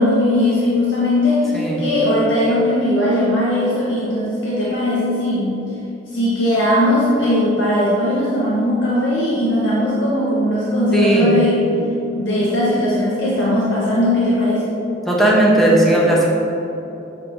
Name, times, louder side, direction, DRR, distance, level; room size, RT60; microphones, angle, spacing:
voice 1, 0.0-5.6 6.1-11.6 12.1-14.7, left 1 dB, 85° left, -7 dB, 1.2 m, -18 dB
voice 2, 1.5-1.9 10.9-11.3 15.1-16.3, right 1 dB, ahead, -4 dB, 1.0 m, -15 dB
7.5 x 4.3 x 5.1 m, 3.0 s
head